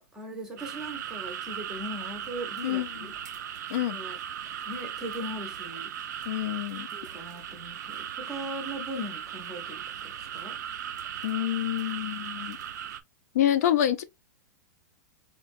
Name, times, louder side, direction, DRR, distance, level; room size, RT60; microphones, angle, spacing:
voice 1, 0.0-3.1 3.9-4.2 4.6-5.9 6.9-10.6, equal, 5° right, 0.6 m, -39 dB
sound 1, 0.6-13.0, right 9 dB, 75° right, 0.5 m, -38 dB
voice 2, 2.6-3.1 3.7-4.0 6.3-6.9 11.2-12.6 13.3-14.0, left 12 dB, 60° left, 0.5 m, -27 dB
4.6 x 2.2 x 2.4 m
supercardioid pair, 170°, 10 cm